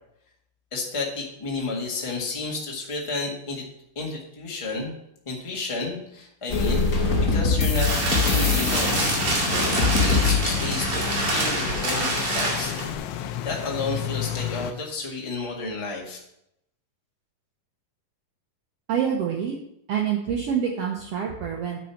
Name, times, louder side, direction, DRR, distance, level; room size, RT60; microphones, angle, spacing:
voice 1, 0.7-3.7 3.9-4.9 5.2-12.7 13.4-16.2, left 3 dB, 25° left, -1 dB, 0.6 m, -32 dB
sound 1, 6.5-12.0, left 4 dB, 60° left, 0.8 m, -24 dB
sound 2, 7.3-12.9, right 2 dB, 45° right, 3.1 m, -26 dB
sound 3, 8.7-14.7, left 10 dB, 80° left, 1.7 m, -33 dB
voice 2, 18.9-19.6 19.9-21.8, right 8 dB, 70° right, 0 dB, 1.4 m, -26 dB
9.4 x 5.3 x 5.8 m, 0.78 s
omnidirectional pair, 3.8 m